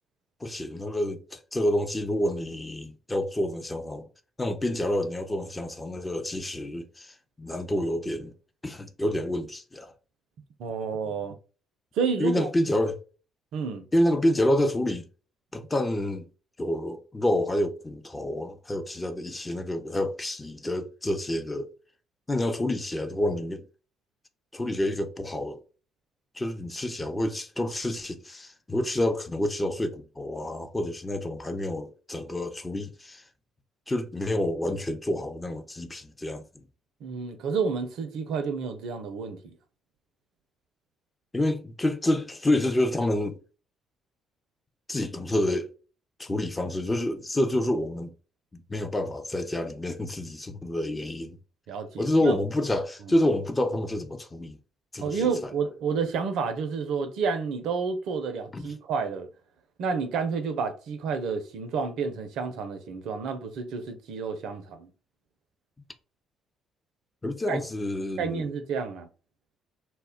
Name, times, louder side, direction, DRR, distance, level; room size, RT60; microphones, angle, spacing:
voice 1, 0.4-4.1 4.4-8.3 8.6-9.9 12.2-13.0 13.9-15.1 15.5-16.3 16.6-21.7 22.3-23.6 24.5-25.6 26.3-33.2 33.9-36.6 41.3-43.4 44.9-45.7 46.2-48.1 48.5-51.4 52.0-54.6 54.9-55.5 58.5-58.7 67.2-68.5, left 1 dB, 20° left, 0.5 m, -28 dB
voice 2, 10.6-11.3 12.0-12.5 13.5-13.9 37.0-39.5 51.7-52.4 55.0-59.3 59.8-64.9 67.5-67.6 68.2-69.1, right 5 dB, 65° right, 0.4 m, -30 dB
2.1 x 2.0 x 3.6 m
hypercardioid pair, 50°, 0 cm